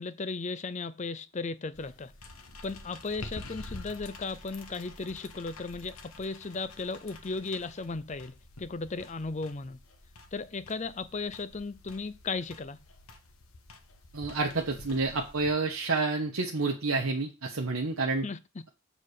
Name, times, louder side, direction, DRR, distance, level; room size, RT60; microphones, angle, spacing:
voice 1, 0.0-2.1 2.6-9.8 10.3-12.8 18.2-18.6, left 3 dB, 35° left, 0.5 m, -36 dB
sound 1, 1.7-15.5, left 2 dB, 85° left, 1.3 m, -48 dB
voice 2, 14.1-18.3, right 3 dB, 75° right, 1.1 m, -29 dB
7.5 x 4.1 x 6.6 m
head